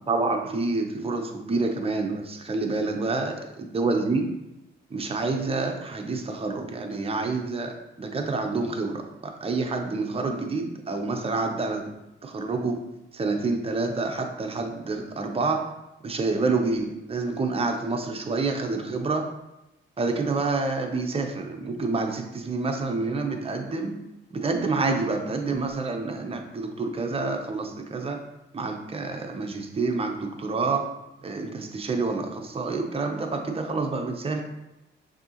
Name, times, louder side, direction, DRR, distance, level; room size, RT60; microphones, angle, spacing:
voice 1, 0.1-4.3 4.9-11.8 12.2-12.8 13.1-15.6 16.0-19.3 20.0-23.9 24.3-28.2 28.5-30.9 31.2-34.4, right 3 dB, 30° right, 3 dB, 0.7 m, -28 dB
6.5 x 2.8 x 2.9 m, 0.92 s
cardioid pair, 90°, 20 cm